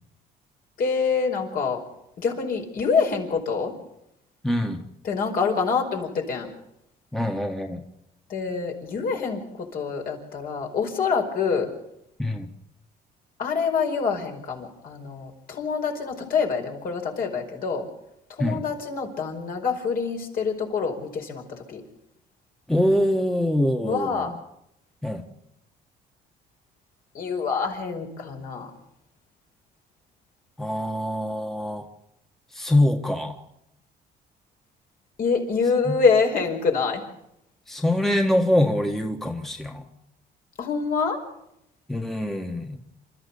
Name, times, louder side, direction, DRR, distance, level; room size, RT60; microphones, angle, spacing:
voice 1, 0.8-1.8 2.2-3.7 5.0-6.5 8.3-11.7 13.4-17.8 18.4-21.4 21.7-21.8 23.8-24.3 27.1-28.7 35.2-37.0 40.6-41.2, left 5 dB, 60° left, 2 dB, 5.0 m, -26 dB
voice 2, 4.4-4.8 7.1-7.8 12.2-12.5 18.4-18.6 22.7-24.4 25.0-25.2 30.6-31.9 32.5-33.4 35.8-36.0 37.7-39.8 41.9-42.8, left 1 dB, ahead, 4 dB, 1.6 m, -24 dB
28.0 x 13.5 x 7.1 m, 0.80 s
cardioid pair, 110°, 17 cm